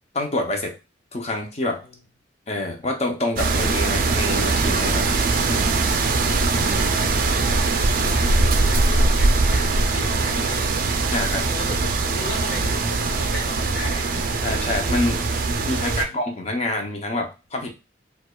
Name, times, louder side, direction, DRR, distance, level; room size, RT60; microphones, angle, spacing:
voice 1, 0.1-0.7 1.1-1.8 2.5-5.1 5.5-5.7 6.6-6.8 11.1-11.5 14.4-15.2 15.6-17.7, left 2 dB, 35° left, 3 dB, 0.7 m, -27 dB
sound 1, 3.4-16.0, right 3 dB, 50° right, 0.4 m, -21 dB
voice 2, 5.9-10.8 11.5-14.5 15.7-16.2, left 2 dB, 85° left, -4 dB, 1.2 m, -37 dB
4.6 x 2.3 x 2.3 m, 0.29 s
head